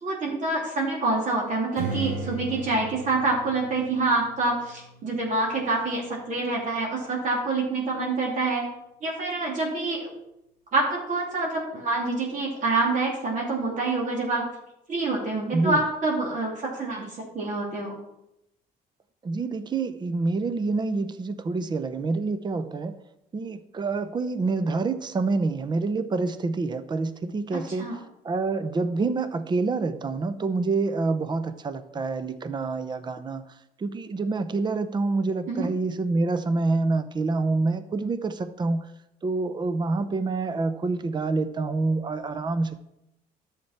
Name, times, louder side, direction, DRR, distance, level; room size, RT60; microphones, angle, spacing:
voice 1, 0.0-8.6 9.0-10.1 10.7-14.5 14.9-17.9 27.8-28.0 35.5-35.7, right 3 dB, 50° right, -2 dB, 2.8 m, -26 dB
Strum, 1.7-7.0, right 3 dB, 70° right, 4.4 m, -38 dB
voice 2, 19.2-23.0 23.3-27.9 28.2-33.5 33.8-38.9 39.2-42.8, right 3 dB, 25° right, 12 dB, 0.7 m, -27 dB
11.0 x 7.5 x 4.3 m, 0.83 s
cardioid pair, 110°, 17 cm